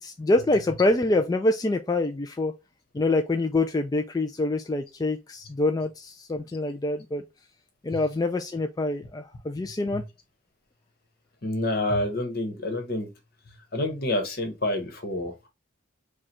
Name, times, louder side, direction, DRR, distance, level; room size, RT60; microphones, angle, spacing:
voice 1, 0.0-2.5 2.9-7.2 7.8-10.0, left 2 dB, 20° left, 0.3 m, -25 dB
voice 2, 11.4-13.1 13.7-15.5, left 1 dB, 50° left, 1.2 m, -28 dB
4.9 x 2.3 x 4.3 m
head